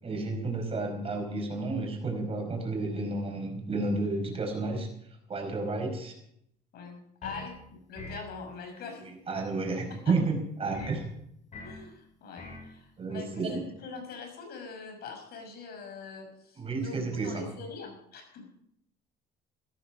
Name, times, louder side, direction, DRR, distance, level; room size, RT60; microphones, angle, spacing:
voice 1, 0.0-4.9 5.3-6.1 9.3-11.0 13.0-13.6 16.6-17.5, right 3 dB, 35° right, 4 dB, 5.1 m, -31 dB
voice 2, 6.7-7.5 7.9-9.1 10.0-10.1 10.8-10.9 11.6-18.4, left 5 dB, 70° left, 3 dB, 6.3 m, -43 dB
sound 1, 7.2-7.6 8.0-8.3 10.7-11.0 11.5-11.8 12.4-12.7, left 3 dB, 45° left, 5.6 m, -42 dB
15.0 x 13.5 x 5.2 m, 0.73 s
cardioid pair, 110°, 17 cm